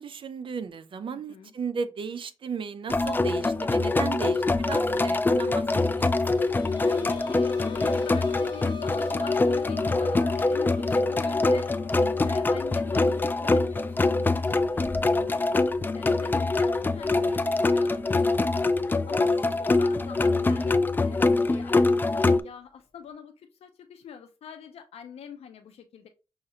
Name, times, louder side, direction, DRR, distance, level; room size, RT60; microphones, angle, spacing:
voice 1, 0.0-6.5, right 5 dB, 55° right, 0.5 m, -35 dB
voice 2, 1.1-1.5 6.7-15.4 15.9-26.1, left 7 dB, 80° left, 0.5 m, -44 dB
sound 1, 2.9-22.4, left 3 dB, 20° left, 0.3 m, -24 dB
sound 2, 6.0-17.4 17.7-17.8 19.4-19.5, left 8 dB, 50° left, 0.9 m, -44 dB
6.3 x 2.4 x 2.8 m
cardioid pair, 75°, 10 cm